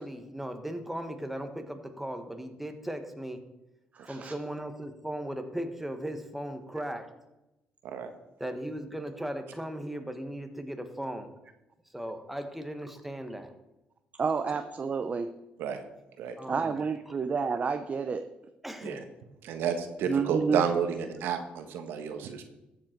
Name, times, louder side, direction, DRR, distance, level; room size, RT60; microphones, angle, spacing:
voice 1, 0.0-3.4 4.1-7.1 8.4-11.3 11.9-13.5 16.4-16.8 17.1-17.2 18.6-19.1, right 1 dB, 5° right, 6 dB, 1.6 m, -37 dB
voice 2, 3.9-4.3 14.2-15.3 16.5-18.3 20.0-20.6, right 5 dB, 40° right, 8 dB, 0.7 m, -30 dB
voice 3, 19.4-22.4, right 7 dB, 80° right, 7 dB, 1.4 m, -30 dB
13.5 x 7.6 x 4.6 m, 0.94 s
supercardioid pair, 75°, 4 cm